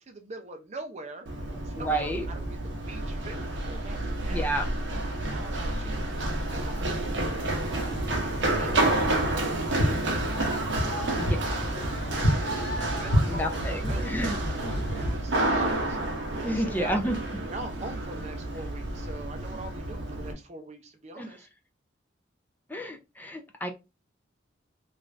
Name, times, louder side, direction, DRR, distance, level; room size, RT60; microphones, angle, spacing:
voice 1, 0.0-4.6 5.2-7.6 8.5-17.1 17.5-21.5, right 2 dB, 35° right, 5 dB, 0.6 m, -44 dB
Run, 1.3-20.3, right 2 dB, 75° right, 0.7 m, -30 dB
voice 2, 1.8-2.2 4.3-4.7 11.1-11.4 13.2-14.4 14.6-14.7 16.4-17.2 21.2-21.3 22.7-23.7, right 1 dB, 10° left, 3 dB, 0.4 m, -30 dB
sound 1, 7.4-15.2, equal, 55° left, 1.9 m, -31 dB
3.2 x 2.5 x 2.4 m, 0.25 s
head